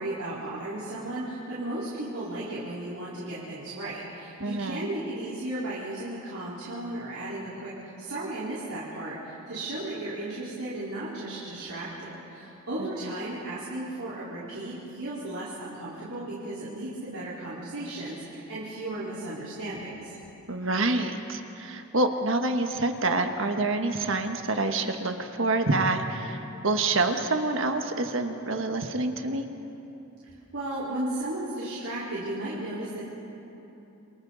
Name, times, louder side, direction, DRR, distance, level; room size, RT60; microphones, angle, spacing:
voice 1, 0.0-20.2 30.5-33.1, right 1 dB, 90° right, -10 dB, 4.3 m, -35 dB
voice 2, 4.4-4.8 20.5-29.5, right 2 dB, 60° right, 5 dB, 1.4 m, -27 dB
28.5 x 26.5 x 4.1 m, 3.0 s
head